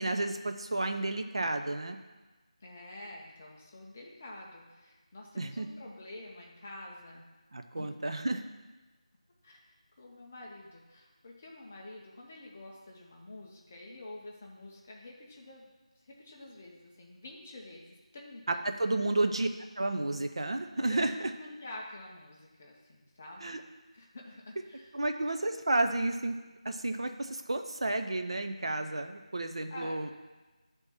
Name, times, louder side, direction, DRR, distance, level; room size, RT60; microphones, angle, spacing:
voice 1, 0.0-2.0 5.4-5.7 7.5-8.4 18.5-19.5 19.8-21.3 23.4-23.6 24.9-26.4 26.6-30.1, right 2 dB, 50° right, 6 dB, 0.5 m, -31 dB
voice 2, 2.6-7.3 7.8-7.9 9.4-9.6 10.0-15.7 16.0-18.9 20.9-23.5 23.9-24.9 29.7-30.1, left 1 dB, 15° left, -1 dB, 0.5 m, -48 dB
9.5 x 3.5 x 4.2 m, 1.2 s
figure-of-eight pair, 175°, 4 cm